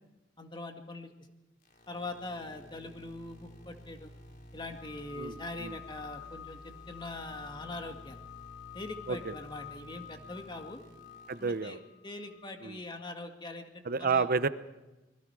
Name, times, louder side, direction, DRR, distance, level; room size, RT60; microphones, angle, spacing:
voice 1, 0.4-1.1 1.9-4.1 4.5-8.2 8.7-10.8 11.4-14.3, left 2 dB, 25° left, 4 dB, 2.1 m, -42 dB
sound 1, 1.6-11.6, equal, 50° left, 4.5 m, -53 dB
sound 2, 4.7-12.5, left 10 dB, 65° left, 2.7 m, -50 dB
voice 2, 5.2-5.8 9.1-9.4 11.3-11.8 12.6-12.8 13.9-14.5, right 4 dB, 50° right, 13 dB, 0.8 m, -30 dB
26.0 x 21.5 x 4.8 m, 1.0 s
head